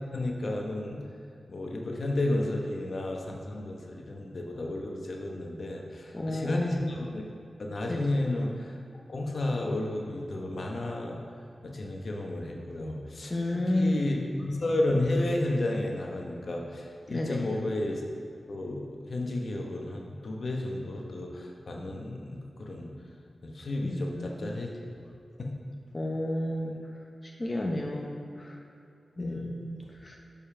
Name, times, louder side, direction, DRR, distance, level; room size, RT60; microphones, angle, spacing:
voice 1, 0.1-1.0 1.5-7.3 7.6-8.7 9.1-11.2 11.6-18.0 18.5-22.9 23.4-24.7 25.4-25.5 29.2-29.6, left 1 dB, 60° left, 0 dB, 1.0 m, -32 dB
voice 2, 6.1-6.9 7.9-8.2 13.3-14.1 17.1-17.5 23.8-24.3 25.9-26.8 27.2-28.6 29.2-30.2, left 1 dB, 30° left, 0 dB, 0.8 m, -31 dB
6.7 x 5.5 x 5.6 m, 2.6 s
cardioid pair, 65°, 0 cm